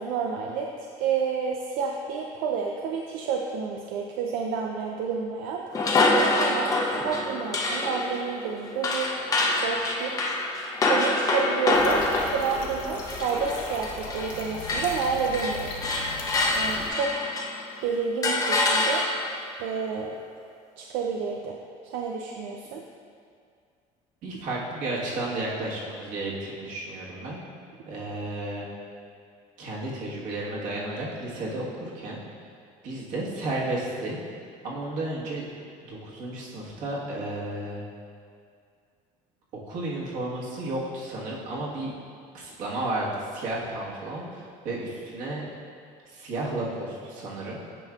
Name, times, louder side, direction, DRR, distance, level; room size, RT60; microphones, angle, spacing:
voice 1, 0.0-10.1 10.8-15.8 16.5-17.2 17.8-19.0 19.6-20.2 20.8-21.6 21.8-22.8, right 6 dB, 80° right, 0 dB, 0.5 m, -30 dB
sound 1, 5.7-14.4 14.6-17.7 18.2-19.4, left 2 dB, 25° left, 0.5 m, -26 dB
sound 2, 11.7-16.9, left 4 dB, 65° left, 1.0 m, -38 dB
voice 2, 24.2-27.4 27.9-28.7 29.6-32.2 32.8-34.2 34.6-35.5 35.8-37.8 39.7-41.9 42.3-45.4 46.0-47.6, right 2 dB, 60° right, -5 dB, 1.4 m, -32 dB
8.9 x 5.6 x 2.4 m, 2.3 s
cardioid pair, 150°, 15 cm